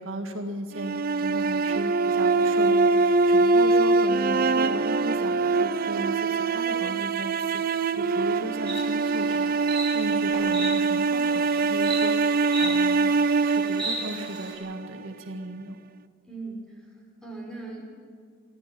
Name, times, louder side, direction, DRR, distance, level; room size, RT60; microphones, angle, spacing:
voice 1, 0.0-15.8, right 1 dB, 70° right, 4 dB, 1.9 m, -36 dB
sound 1, 0.7-14.9, right 3 dB, 45° right, 0.5 m, -23 dB
Insect, 8.7-14.5, right 1 dB, 25° right, 4.8 m, -37 dB
sound 2, 10.3-11.3 12.6-13.4, equal, 35° left, 3.1 m, -45 dB
voice 2, 16.3-17.9, right 3 dB, 5° left, -3 dB, 5.9 m, -39 dB
24.0 x 14.5 x 7.8 m, 2.2 s
head